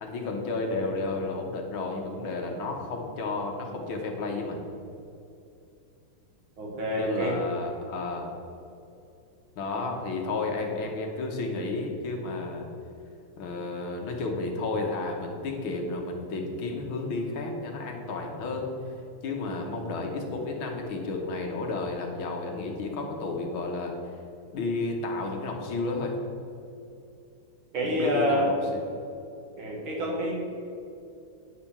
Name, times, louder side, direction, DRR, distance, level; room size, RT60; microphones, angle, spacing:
voice 1, 0.0-4.7 6.9-8.4 9.6-12.7 13.4-18.7 19.2-23.9 24.5-26.1 27.8-28.6, left 3 dB, 70° left, 2 dB, 1.9 m, -32 dB
voice 2, 6.6-7.4 27.7-28.5 29.6-30.3, equal, 65° right, -2 dB, 2.6 m, -27 dB
9.5 x 5.0 x 7.1 m, 2.7 s
omnidirectional pair, 2.4 m